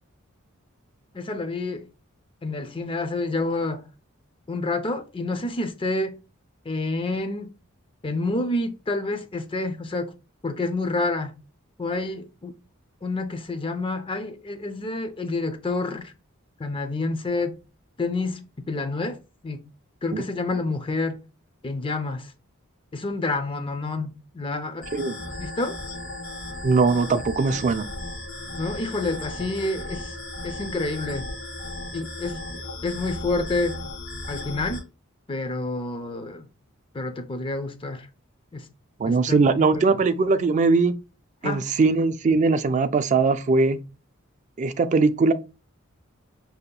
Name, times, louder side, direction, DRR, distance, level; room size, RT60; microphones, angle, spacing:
voice 1, 1.1-1.9 2.4-3.9 4.5-6.2 6.7-7.5 8.0-10.1 10.4-11.4 11.8-12.5 13.0-16.1 16.6-17.5 18.0-19.2 19.4-19.6 20.0-21.2 21.6-22.3 22.9-24.9 25.3-25.8 28.6-30.1 30.4-31.3 31.9-33.8 34.3-34.8 35.3-36.5 36.9-38.1 38.5-38.7 39.1-39.5 41.4-41.6, left 2 dB, 25° left, 0.5 m, -28 dB
sound 1, 24.8-34.8, left 1 dB, 65° left, 1.4 m, -36 dB
voice 2, 26.6-27.9 39.0-40.9 41.4-43.8 44.6-45.3, right 4 dB, 35° right, 0.3 m, -20 dB
5.1 x 2.8 x 2.2 m
head